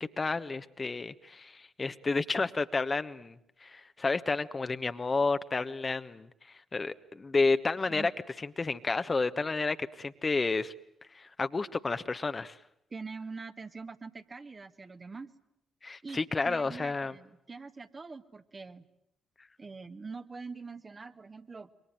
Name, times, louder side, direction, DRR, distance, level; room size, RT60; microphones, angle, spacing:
voice 1, 0.2-6.3 6.7-8.1 8.6-10.7 11.1-12.6 15.8-17.1, left 3 dB, 35° left, 11 dB, 1.2 m, -31 dB
voice 2, 12.9-15.3 16.0-18.8 19.6-21.7, right 4 dB, 35° right, 8 dB, 1.7 m, -44 dB
27.5 x 23.5 x 9.0 m, 0.79 s
hypercardioid pair, 40°, 0 cm